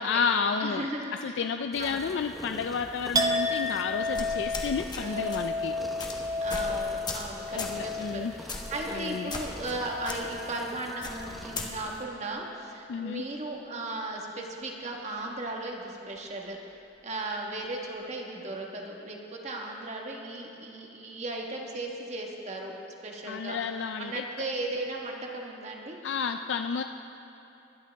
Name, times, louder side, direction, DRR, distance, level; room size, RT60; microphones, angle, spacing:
voice 1, 0.0-0.9 1.2-5.8 7.5-8.3 8.9-9.3 12.9-13.2 23.2-24.2 26.0-26.8, left 5 dB, 80° left, 7 dB, 0.4 m, -31 dB
voice 2, 0.6-1.3 1.8-2.1 5.0-5.4 6.4-16.6 17.0-22.7 23.0-23.6 24.0-26.0, right 2 dB, 40° right, 0 dB, 1.4 m, -36 dB
sound 1, 1.7-12.0, equal, ahead, 1.0 m, -45 dB
Chink clink, 3.1-10.8 11.2-11.8, left 2 dB, 20° right, 0.6 m, -33 dB
sound 2, 4.1-5.0 5.3-5.5 6.0-6.1 6.5-6.7 7.1-7.3 7.6-7.8 8.5-8.8 9.3-9.7 10.0-10.2 11.0-11.7, left 3 dB, 25° left, 1.1 m, -36 dB
20.0 x 11.5 x 3.5 m, 2.9 s
head